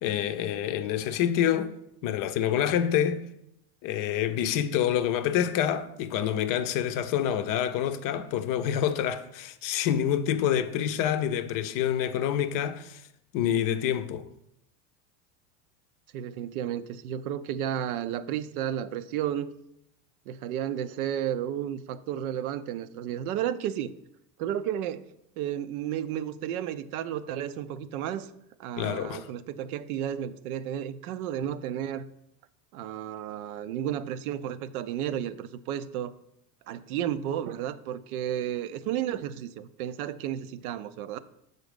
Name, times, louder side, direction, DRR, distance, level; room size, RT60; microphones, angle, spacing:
voice 1, 0.0-1.8 2.0-3.3 3.8-13.0 13.3-14.3 28.8-29.3, left 10 dB, 45° left, 0.6 m, -27 dB
voice 2, 16.1-19.5 20.3-23.9 24.4-25.1 25.4-28.3 28.6-32.1 32.7-36.1 36.7-41.2, right 10 dB, 70° right, 0.6 m, -32 dB
6.2 x 4.0 x 5.1 m
hypercardioid pair, 95°, 46 cm